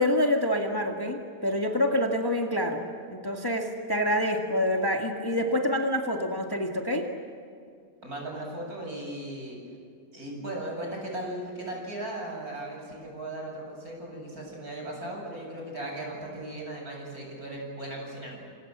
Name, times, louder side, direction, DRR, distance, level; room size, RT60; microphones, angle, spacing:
voice 1, 0.0-2.8 3.1-7.1, left 1 dB, 15° left, 2 dB, 1.9 m, -27 dB
voice 2, 8.0-9.6 10.1-18.5, right 1 dB, 55° right, -1 dB, 8.8 m, -37 dB
28.0 x 28.0 x 7.5 m, 2.3 s
omnidirectional pair, 1.8 m